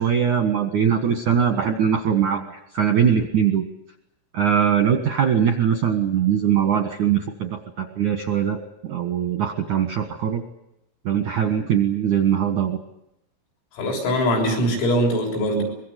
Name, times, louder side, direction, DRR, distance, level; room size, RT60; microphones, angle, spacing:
voice 1, 0.0-2.5 2.7-3.6 4.3-10.4 11.0-12.8, right 8 dB, 70° right, 7 dB, 1.9 m, -21 dB
voice 2, 13.7-15.6, equal, 80° left, 0 dB, 9.5 m, -22 dB
24.0 x 22.5 x 8.3 m, 0.80 s
omnidirectional pair, 5.9 m